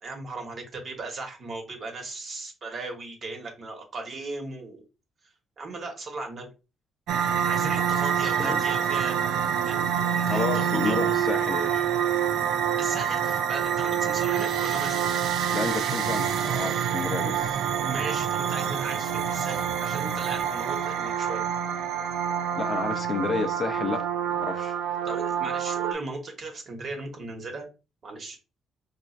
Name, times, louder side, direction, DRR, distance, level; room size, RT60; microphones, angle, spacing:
voice 1, 0.0-4.8 5.6-6.5 7.4-9.2 9.6-11.0 12.8-15.1 17.7-21.4 25.0-27.7 28.0-28.4, right 3 dB, 50° right, 1.1 m, -37 dB
sound 1, 7.1-25.9, right 8 dB, 80° right, 0.3 m, -27 dB
voice 2, 8.2-8.6 10.3-11.9 15.5-17.6 22.6-24.1 24.3-24.8, left 4 dB, 45° left, 0.4 m, -31 dB
4.1 x 2.3 x 2.4 m
cardioid pair, 90°, 0 cm